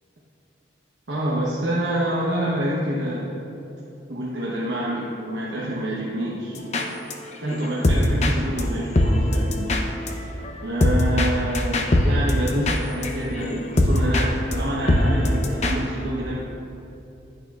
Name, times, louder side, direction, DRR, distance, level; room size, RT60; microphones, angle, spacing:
voice 1, 1.1-3.3 4.1-6.6 7.4-10.2 10.6-16.4, right 1 dB, 85° right, -6 dB, 1.0 m, -27 dB
sound 1, 6.6-7.1 7.5-14.3 14.5-14.6 14.8-15.7, left 1 dB, 40° left, 0.6 m, -21 dB
11.0 x 9.3 x 2.4 m, 2.9 s
head